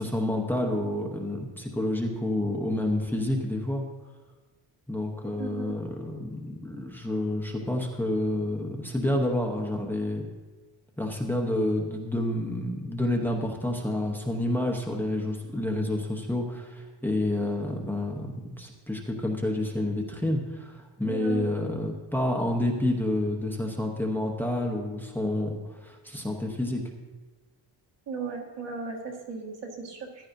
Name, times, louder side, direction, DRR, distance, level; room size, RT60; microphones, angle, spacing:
voice 1, 0.0-3.8 4.9-10.2 11.0-26.8, left 1 dB, 5° left, 0 dB, 0.9 m, -29 dB
voice 2, 5.4-5.7 21.0-21.6 28.1-30.3, right 5 dB, 70° right, 1 dB, 1.9 m, -36 dB
14.5 x 11.0 x 2.6 m, 1.3 s
wide cardioid pair, 165°, 43 cm